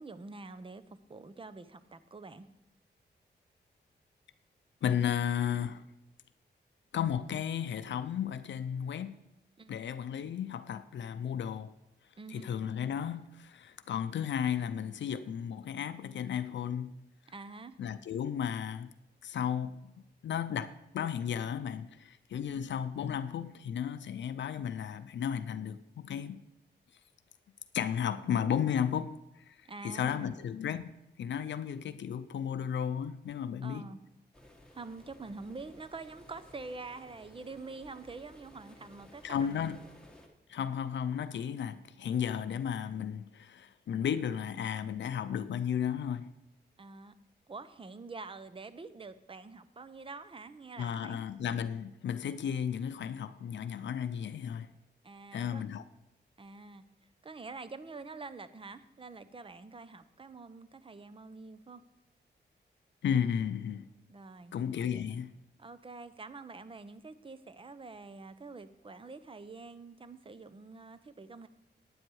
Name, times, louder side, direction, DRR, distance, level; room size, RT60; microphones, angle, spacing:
voice 1, 0.0-2.5 9.6-10.0 12.2-12.5 17.3-17.8 22.5-22.7 29.7-30.4 33.6-34.0 34.7-39.5 41.5-41.6 46.8-47.1 47.5-51.2 55.0-55.7 56.4-56.8 57.2-61.8 64.1-64.5 65.6-71.5, right 3 dB, 30° right, 0.7 m, -46 dB
voice 2, 4.8-5.8 6.9-9.2 9.7-11.7 12.3-16.9 17.8-18.9 19.2-19.8 20.2-26.4 27.7-30.9 31.2-33.9 39.2-39.8 40.5-46.3 50.8-54.7 55.3-55.8 63.0-63.9 64.5-65.3, left 8 dB, 80° left, 0.5 m, -34 dB
sound 1, 34.3-40.3, left 1 dB, 5° left, 1.6 m, -57 dB
10.5 x 9.5 x 4.7 m
cardioid pair, 90°, 19 cm